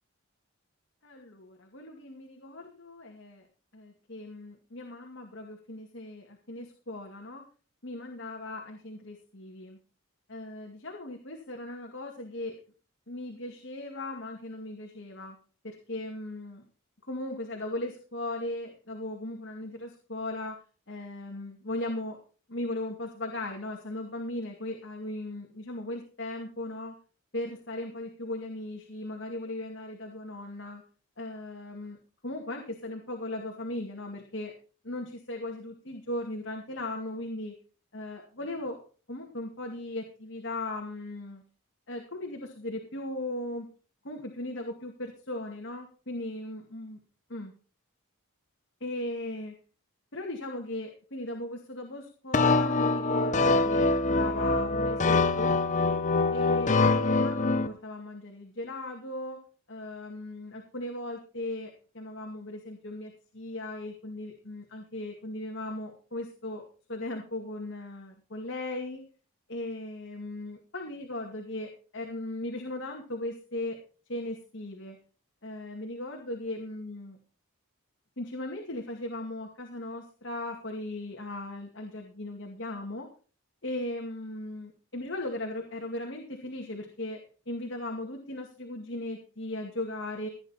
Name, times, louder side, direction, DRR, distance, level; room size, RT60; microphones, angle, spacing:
voice 1, 1.0-3.4 3.7-7.4 7.8-9.8 10.3-12.6 13.1-15.4 15.6-16.6 17.0-20.6 20.9-22.2 22.5-26.9 27.3-30.8 31.2-34.5 34.8-37.5 37.9-38.8 39.1-41.4 41.9-43.7 44.0-47.0 47.3-47.5 48.8-49.5 50.1-55.6 56.3-59.4 59.7-61.7 61.9-69.0 69.5-73.8 74.1-75.0 75.4-77.2 78.2-83.1 83.6-87.2 87.5-90.3, left 1 dB, 60° left, 1 dB, 2.3 m, -37 dB
sound 1, 52.3-57.7, left 3 dB, 35° left, 0.8 m, -24 dB
16.5 x 9.4 x 4.3 m, 0.38 s
head